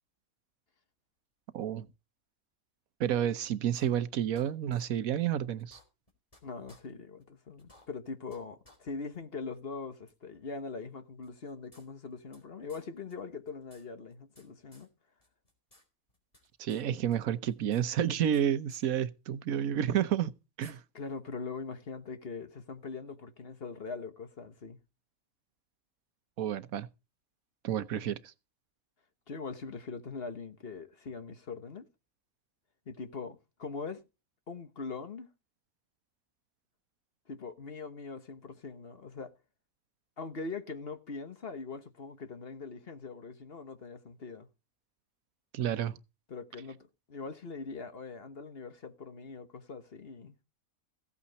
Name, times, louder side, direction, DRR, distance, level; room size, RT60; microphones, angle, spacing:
voice 1, 1.5-1.9 3.0-5.8 16.6-20.3 20.6-20.8 26.4-26.9 27.6-28.2 45.5-46.0, right 10 dB, 85° right, 1.3 m, -30 dB
sound 1, 3.7-4.4 4.7-4.8 5.2-5.3 5.6-6.4 6.7-6.8 7.2-7.3 7.6-8.4 8.6-8.8 9.1-9.2 10.1-10.2 11.2-12.4 12.7-12.8 13.1-13.2 13.4-14.5 14.7-14.9 15.2-16.8 17.1-18.4 18.7-18.8 20.0-20.1 20.6-20.7, left 1 dB, 25° left, 3.8 m, -60 dB
voice 2, 6.4-14.9 20.9-24.8 29.3-31.9 32.9-34.0 34.5-35.3 37.3-39.3 40.2-44.5 46.3-50.3, left 4 dB, 45° left, 1.4 m, -42 dB
15.5 x 8.5 x 4.1 m
omnidirectional pair, 1.4 m